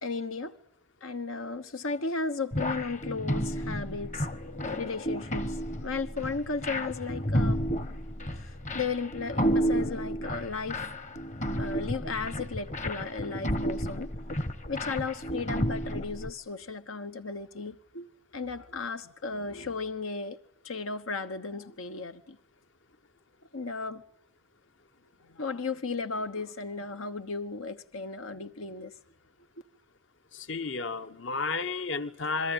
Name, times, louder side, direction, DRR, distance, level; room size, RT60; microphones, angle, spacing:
voice 1, 0.0-0.6 1.0-4.3 4.7-5.5 5.8-7.6 8.3-10.8 11.6-14.1 14.7-20.4 20.6-22.4 23.5-24.0 25.2-28.9, left 4 dB, 80° left, 1.2 m, -35 dB
sound 1, 2.5-16.3, equal, 35° left, 1.2 m, -32 dB
voice 2, 30.3-32.5, left 4 dB, 60° left, 1.2 m, -32 dB
29.5 x 22.0 x 8.9 m
head